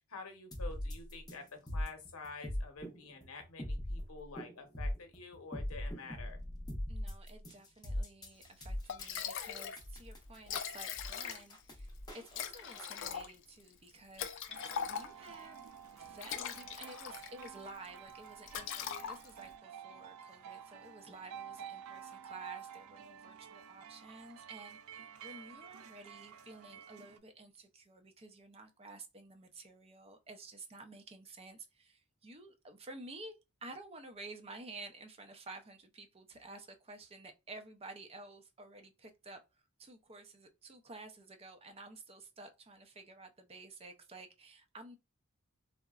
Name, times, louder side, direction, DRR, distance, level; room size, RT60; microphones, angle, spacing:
voice 1, 0.1-6.4, left 4 dB, 80° left, 0.8 m, -48 dB
sound 1, 0.5-12.8, left 1 dB, 20° left, 0.6 m, -41 dB
voice 2, 6.9-11.9 12.1-15.6 15.9-33.3 33.6-45.0, right 2 dB, 30° right, 0.5 m, -52 dB
Liquid, 8.5-8.6 8.9-9.8 10.1-10.2 10.4-11.6 12.3-15.3 16.0-17.5 17.8-18.1 18.5-19.5, left 8 dB, 60° left, 0.4 m, -41 dB
sound 2, 14.5-27.2, right 8 dB, 85° right, 0.4 m, -51 dB
3.7 x 2.1 x 2.3 m
head